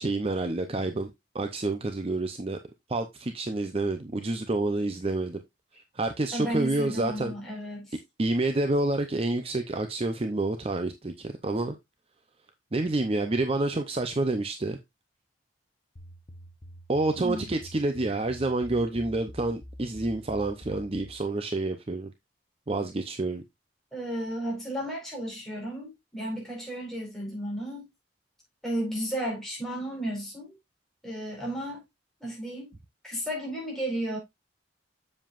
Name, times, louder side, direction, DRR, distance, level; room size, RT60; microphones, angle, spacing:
voice 1, 0.0-2.6 2.9-5.4 5.9-7.3 8.2-11.8 12.7-14.8 16.9-22.1 22.7-23.4, right 2 dB, 30° right, 0.6 m, -28 dB
voice 2, 6.3-8.0 17.1-17.4 23.9-27.8 28.6-30.5 31.0-31.8 32.2-32.7 33.0-34.2, right 1 dB, ahead, 4.3 m, -33 dB
sound 1, 16.0-21.3, equal, 45° left, 1.0 m, -46 dB
7.5 x 7.4 x 2.5 m
head